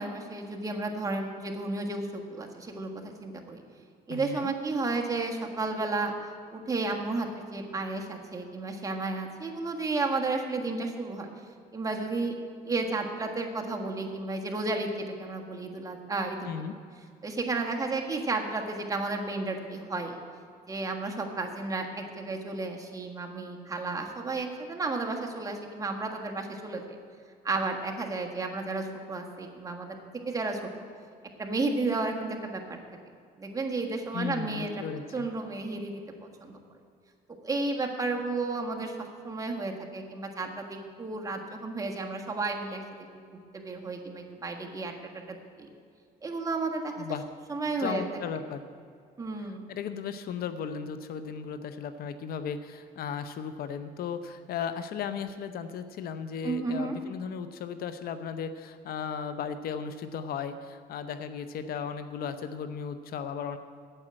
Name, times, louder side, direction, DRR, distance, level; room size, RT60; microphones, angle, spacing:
voice 1, 0.0-3.6 4.1-6.1 6.5-11.3 11.7-12.3 12.6-16.5 17.2-20.2 20.7-27.0 27.4-29.9 30.3-30.6 31.4-32.8 33.4-34.7 35.1-36.0 36.4-36.6 37.4-42.8 43.5-44.9 45.3-45.7 46.2-46.9 47.5-48.0 49.2-49.6 56.4-57.0, right 3 dB, 20° right, 1 dB, 1.5 m, -32 dB
voice 2, 4.1-4.5 16.5-16.7 34.1-35.3 47.0-47.2 47.8-48.6 49.4-63.6, left 7 dB, 65° left, 10 dB, 0.7 m, -36 dB
9.1 x 7.4 x 8.7 m, 2.2 s
cardioid pair, 110°, 17 cm